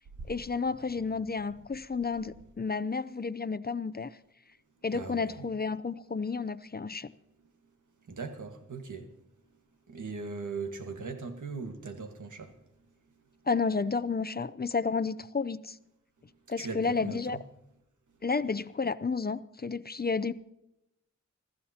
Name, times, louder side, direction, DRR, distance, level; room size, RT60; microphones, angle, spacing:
voice 1, 0.3-4.1 4.8-7.1 13.5-15.8 16.5-17.4 18.2-20.3, left 4 dB, 30° left, 0.6 m, -31 dB
voice 2, 4.9-5.5 8.0-9.3 9.9-12.6 16.6-17.4, right 4 dB, 80° right, 1.7 m, -39 dB
26.0 x 14.0 x 2.9 m
cardioid pair, 50°, 30 cm